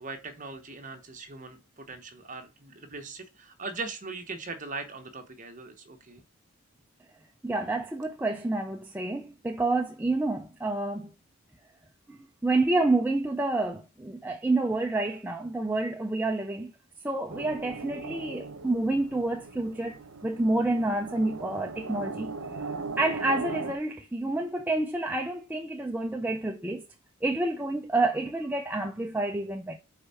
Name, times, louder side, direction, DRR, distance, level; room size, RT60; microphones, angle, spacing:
voice 1, 0.0-6.2, right 3 dB, 35° right, 1.1 m, -40 dB
voice 2, 7.4-11.1 12.1-16.7 17.0-20.0 20.2-22.3 23.0-26.8 27.2-29.8, right 2 dB, 10° right, 0.4 m, -28 dB
sound 1, 17.3-23.7, right 3 dB, 75° right, 0.8 m, -38 dB
4.9 x 4.4 x 5.4 m
head